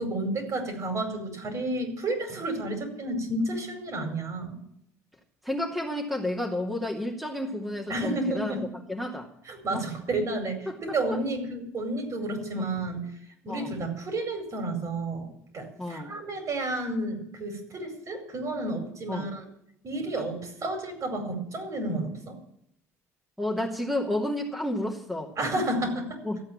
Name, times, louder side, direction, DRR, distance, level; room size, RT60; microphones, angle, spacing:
voice 1, 0.0-4.6 7.9-8.6 9.5-13.1 13.4-15.3 15.5-19.5 19.8-22.4 25.4-26.2, right 2 dB, 40° right, 5 dB, 4.8 m, -31 dB
voice 2, 5.4-8.6 8.9-9.3 9.7-9.8 10.7-10.8 11.1-11.2 12.6-12.7 13.5-13.7 15.8-16.1 19.1-19.3 23.4-25.3 26.2-26.4, left 1 dB, ahead, -1 dB, 2.6 m, -31 dB
14.5 x 8.6 x 8.8 m, 0.76 s
figure-of-eight pair, 55°, 8 cm